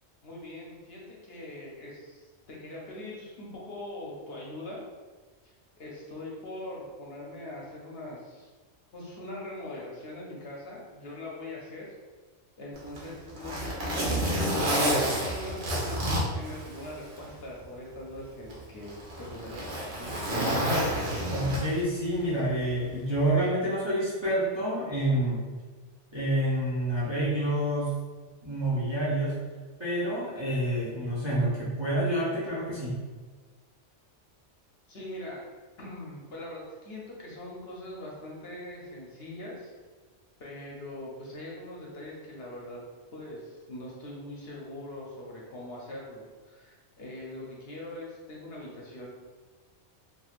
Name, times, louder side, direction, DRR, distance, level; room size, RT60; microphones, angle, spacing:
voice 1, 0.2-4.8 5.4-8.5 8.9-11.9 12.6-14.7 15.1-18.9 19.2-20.3 34.9-35.5 35.8-39.7 40.4-42.8 43.1-49.1, left 1 dB, 65° left, -3 dB, 0.8 m, -42 dB
Zipper (clothing), 12.8-17.2 17.6-17.7 18.5-22.0 23.1-23.3, equal, 65° right, 1.0 m, -29 dB
voice 2, 21.3-25.4 26.1-28.0 28.4-29.3 29.8-33.0, right 1 dB, 30° right, -10 dB, 0.6 m, -28 dB
3.1 x 2.4 x 2.4 m, 1.4 s
omnidirectional pair, 1.2 m